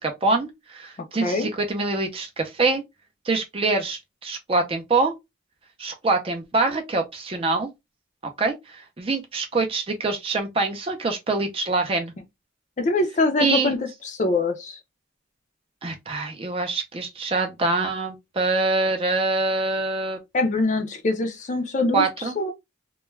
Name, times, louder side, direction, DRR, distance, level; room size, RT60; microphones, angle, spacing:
voice 1, 0.0-2.8 3.3-5.2 5.8-7.7 8.4-12.1 13.4-13.7 15.8-20.2 21.9-22.3, right 3 dB, 30° right, 0.4 m, -25 dB
voice 2, 12.8-14.8 20.3-22.0 22.4-22.5, left 2 dB, 35° left, 0.4 m, -23 dB
2.2 x 2.1 x 3.0 m
head